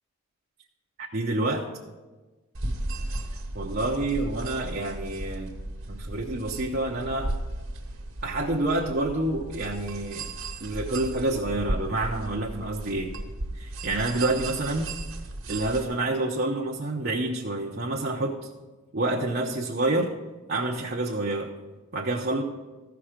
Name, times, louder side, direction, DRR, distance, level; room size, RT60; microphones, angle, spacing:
voice 1, 1.0-1.7 3.5-5.5 5.9-7.3 8.2-10.3 10.6-13.1 13.5-14.9 15.5-18.5 18.9-20.2 20.5-21.5 21.9-22.4, right 2 dB, 45° right, -1 dB, 0.8 m, -28 dB
sound 1, 2.5-15.8, right 2 dB, 70° right, 1.3 m, -35 dB
14.5 x 5.9 x 5.0 m, 1.2 s
head